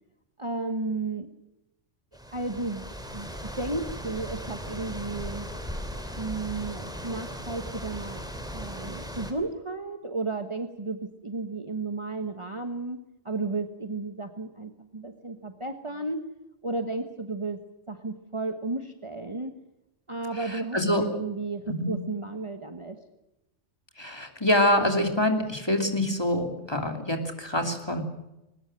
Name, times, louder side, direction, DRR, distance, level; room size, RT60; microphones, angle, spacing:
voice 1, 0.4-1.3 2.3-2.8 3.1-5.5 6.2-8.2 8.5-13.0 13.2-16.2 16.6-17.6 17.9-19.5 20.1-23.0, right 3 dB, 25° right, 6 dB, 1.3 m, -33 dB
sound 1, 2.1-9.3, equal, 5° right, 2.9 m, -38 dB
voice 2, 20.3-21.0 21.7-21.9 24.0-28.0, left 1 dB, 20° left, 4 dB, 2.9 m, -25 dB
21.0 x 19.5 x 7.8 m, 0.92 s
omnidirectional pair, 1.3 m